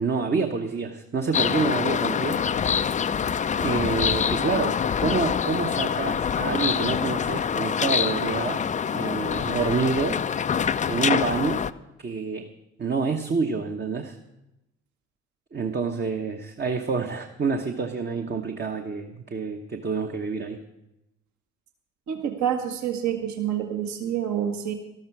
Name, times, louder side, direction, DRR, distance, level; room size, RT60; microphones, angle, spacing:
voice 1, 0.0-2.5 3.6-8.6 8.9-10.2 10.9-11.6 12.0-12.5 12.8-14.2 15.5-20.6, right 4 dB, 30° right, 4 dB, 1.0 m, -27 dB
sound 1, 1.3-11.7, left 7 dB, 20° left, 0.4 m, -25 dB
voice 2, 22.1-24.7, right 9 dB, 55° right, 5 dB, 1.6 m, -27 dB
13.0 x 13.0 x 4.7 m, 0.92 s
hypercardioid pair, 50°, 35 cm